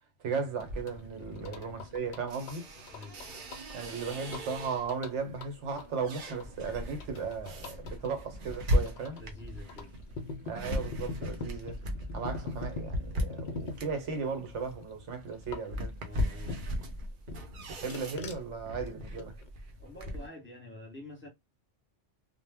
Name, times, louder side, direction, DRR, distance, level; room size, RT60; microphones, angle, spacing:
voice 1, 0.2-2.7 3.7-9.2 10.4-11.8 12.1-15.9 17.7-19.3, right 5 dB, 75° right, 1.1 m, -36 dB
sound 1, 0.6-16.9 17.3-19.5, left 3 dB, 60° left, 0.5 m, -45 dB
sound 2, 0.6-5.1 5.5-20.3, left 1 dB, 50° right, 0.7 m, -38 dB
voice 2, 2.9-3.4 9.0-10.0 16.0-16.7 19.8-21.3, left 2 dB, 10° left, 0.8 m, -47 dB
2.1 x 2.1 x 3.3 m
omnidirectional pair, 1.2 m